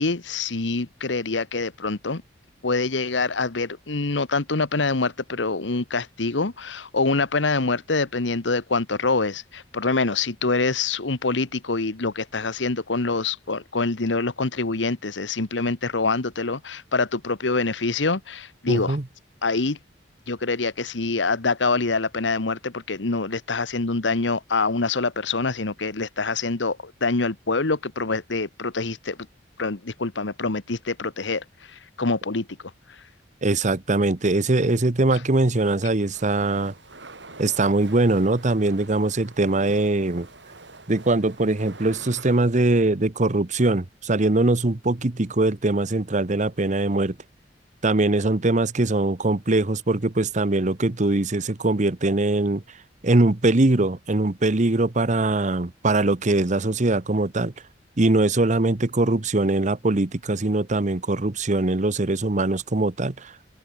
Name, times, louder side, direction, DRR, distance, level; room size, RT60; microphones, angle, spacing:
voice 1, 0.0-2.2 2.6-19.0 19.4-19.8 20.3-29.2 29.6-31.4 31.7-32.5, left 3 dB, 85° left, 1.3 m, -25 dB
voice 2, 18.7-19.0 33.4-36.7 37.4-40.3 40.9-47.2 47.8-52.6 53.0-57.5 58.0-63.3, right 2 dB, 40° right, 1.0 m, -22 dB
sound 1, 36.1-42.4, right 3 dB, 75° right, 6.6 m, -46 dB
open air
head